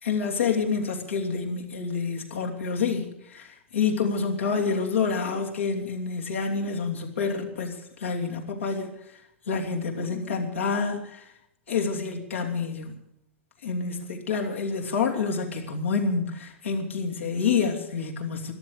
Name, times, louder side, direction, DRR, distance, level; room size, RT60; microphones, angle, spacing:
voice 1, 0.0-8.9 9.5-11.2 11.7-13.0 13.6-18.5, left 5 dB, 90° left, 0 dB, 3.0 m, -28 dB
14.0 x 12.0 x 8.1 m, 0.78 s
hypercardioid pair, 110°, 7 cm